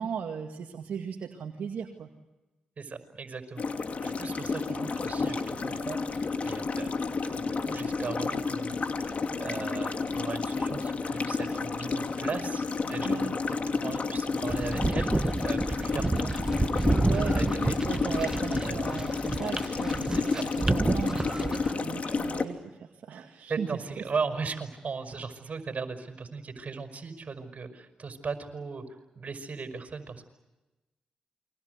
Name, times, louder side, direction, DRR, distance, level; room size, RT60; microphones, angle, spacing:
voice 1, 0.0-2.1 13.0-13.3 17.1-23.7, right 7 dB, 70° right, 2 dB, 2.1 m, -37 dB
voice 2, 2.8-6.9 7.3-16.3 16.6-17.8 18.5-19.0 20.1-20.5 23.5-28.8 29.2-30.3, right 5 dB, 50° right, 7 dB, 5.4 m, -38 dB
sound 1, 3.6-22.4, left 4 dB, 50° left, 2.7 m, -31 dB
sound 2, 14.5-21.7, right 2 dB, 20° right, 1.5 m, -29 dB
29.0 x 23.5 x 8.1 m, 1.1 s
supercardioid pair, 45°, 3 cm